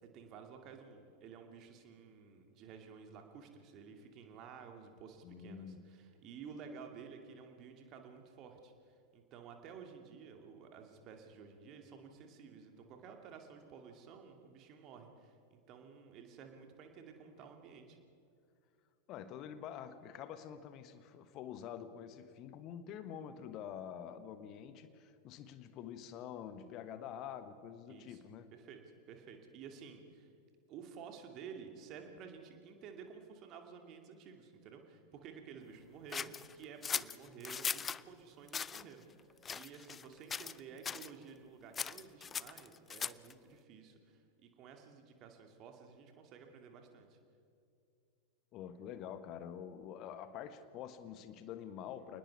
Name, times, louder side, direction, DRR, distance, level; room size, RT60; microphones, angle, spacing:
voice 1, 0.0-18.0 27.9-28.2 28.5-28.8 29.1-30.3 30.7-39.1 39.5-47.2, right 6 dB, 35° right, 4 dB, 2.5 m, -53 dB
voice 2, 5.2-5.8 19.1-28.5 48.5-52.2, left 9 dB, 35° left, 11 dB, 1.4 m, -47 dB
sound 1, 36.1-38.0 38.5-38.8 39.4-40.1 40.3-40.6 40.8-41.1 41.7-43.3, left 6 dB, 20° left, 0.4 m, -39 dB
28.0 x 20.0 x 4.8 m, 2.5 s
figure-of-eight pair, 90°, 0 cm